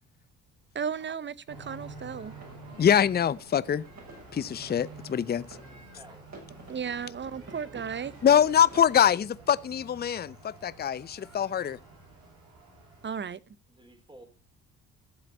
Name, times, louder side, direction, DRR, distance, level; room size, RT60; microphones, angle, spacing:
voice 1, 0.7-2.3 6.7-8.1 13.0-13.4, right 7 dB, 30° right, 0.7 m, -34 dB
sound 1, 1.5-13.1, right 2 dB, 70° right, 7.3 m, -49 dB
sound 2, 2.3-8.9, right 3 dB, 45° right, 6.9 m, -51 dB
voice 2, 2.8-3.8 4.3-5.5 8.2-11.8, left 9 dB, 25° left, 0.6 m, -24 dB
voice 3, 5.6-6.3 6.8-7.8 13.7-14.3, right 1 dB, 15° right, 3.8 m, -55 dB
13.0 x 7.5 x 4.2 m
hypercardioid pair, 55°, 38 cm